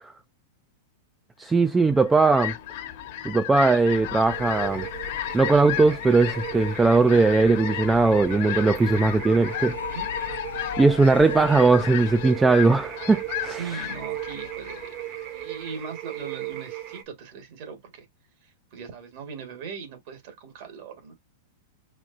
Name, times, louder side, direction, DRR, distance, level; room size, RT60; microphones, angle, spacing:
voice 1, 1.4-2.6 3.2-4.9 5.3-9.8 10.8-13.7, right 3 dB, 10° right, 0.3 m, -19 dB
Fowl, 1.8-15.7, left 13 dB, 60° left, 1.0 m, -35 dB
sound 1, 3.9-12.2, left 7 dB, 90° left, 0.6 m, -38 dB
sound 2, 4.3-17.0, right 14 dB, 40° right, 1.0 m, -36 dB
voice 2, 13.4-18.1 18.4-21.1, right 6 dB, 60° right, 1.6 m, -39 dB
4.9 x 3.2 x 2.5 m
hypercardioid pair, 130°, 0 cm